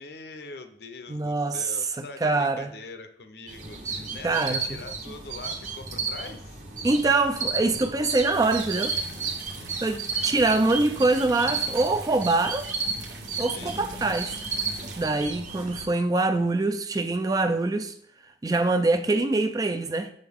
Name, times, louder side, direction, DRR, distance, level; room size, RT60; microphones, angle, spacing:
voice 1, 0.0-6.6 9.5-10.0 13.5-13.8, left 3 dB, 60° left, 0.7 m, -43 dB
voice 2, 1.1-2.7 4.2-4.6 6.8-9.0 9.8-12.7 13.4-14.3 15.0-17.9 18.4-20.1, right 3 dB, 20° right, 0.3 m, -24 dB
sound 1, 3.5-15.8, right 4 dB, 45° right, 1.0 m, -33 dB
sound 2, 8.3-15.1, right 5 dB, 75° right, 1.1 m, -44 dB
6.9 x 6.4 x 3.6 m
head